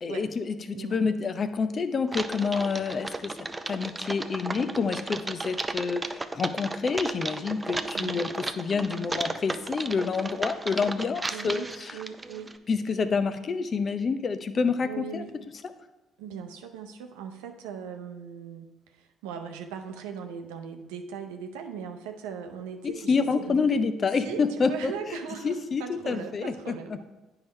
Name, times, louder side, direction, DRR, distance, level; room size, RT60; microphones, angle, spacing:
voice 1, 0.0-3.3 3.7-12.0 12.7-15.3 15.6-15.7 22.8-24.9 25.4-26.8, left 5 dB, 45° left, 10 dB, 0.5 m, -28 dB
Typing, 2.1-12.6, right 2 dB, 20° right, 0.4 m, -34 dB
voice 2, 11.3-11.7 11.9-12.5 14.8-15.3 16.2-23.6 24.2-27.1, right 7 dB, 85° right, 5 dB, 0.6 m, -39 dB
9.4 x 4.8 x 3.2 m, 1.1 s
hypercardioid pair, 55°, 0 cm